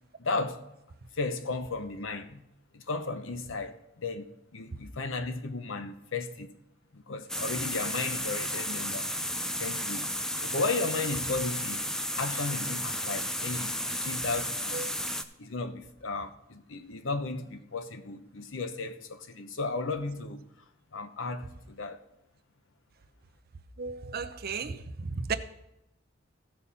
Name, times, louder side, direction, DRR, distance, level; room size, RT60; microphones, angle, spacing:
voice 1, 0.2-0.7 1.1-2.5 2.7-4.3 4.5-6.5 6.9-9.1 9.4-10.1 10.4-11.8 12.2-14.9 15.4-20.4 20.9-22.0, left 3 dB, 75° left, 0.8 m, -34 dB
sound 1, 7.3-15.2, equal, 5° left, 0.5 m, -33 dB
voice 2, 23.8-24.8 25.3-25.4, right 5 dB, 50° right, 0.6 m, -34 dB
15.5 x 5.6 x 4.2 m
head